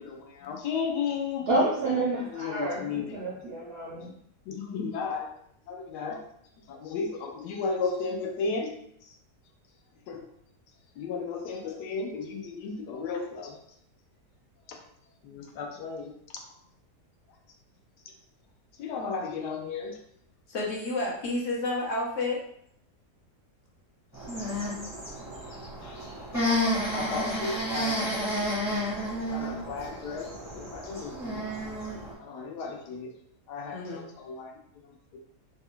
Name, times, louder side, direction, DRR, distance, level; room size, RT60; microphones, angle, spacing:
voice 1, 0.0-1.5 2.2-3.4 4.5-5.3 5.7-6.2 6.7-8.7 9.0-9.2 10.1-10.3 11.0-13.6 14.7-14.8 15.2-16.4 18.8-20.0 25.8-26.3 26.9-28.1 29.3-31.5 32.2-33.1 33.5-35.2, left 5 dB, 80° left, 2 dB, 1.1 m, -34 dB
voice 2, 1.5-4.1, right 2 dB, 65° right, -5 dB, 0.6 m, -29 dB
voice 3, 20.5-22.4 33.7-34.0, left 2 dB, 60° left, -3 dB, 0.9 m, -30 dB
sound 1, 24.1-32.1, equal, 15° left, 0.7 m, -31 dB
3.2 x 2.2 x 3.6 m, 0.69 s
omnidirectional pair, 1.8 m